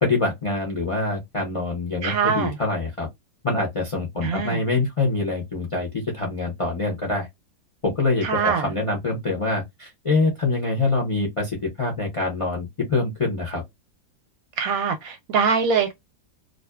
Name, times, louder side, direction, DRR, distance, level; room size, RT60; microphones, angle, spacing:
voice 1, 0.0-3.1 3.4-7.3 7.8-13.6, left 3 dB, 45° left, 0.4 m, -25 dB
voice 2, 2.0-2.6 4.2-4.6 8.2-8.7 14.6-15.9, right 6 dB, 70° right, 0.9 m, -23 dB
2.5 x 2.4 x 2.2 m
omnidirectional pair, 1.8 m